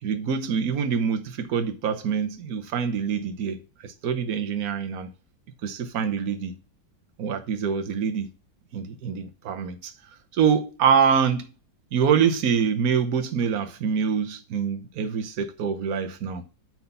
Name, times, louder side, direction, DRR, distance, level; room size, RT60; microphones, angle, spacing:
voice 1, 0.0-5.1 5.6-6.6 7.2-8.3 8.7-9.9 10.3-11.5 11.9-16.4, right 7 dB, 55° right, 1.3 m, -25 dB
8.9 x 4.0 x 5.6 m
omnidirectional pair, 2.0 m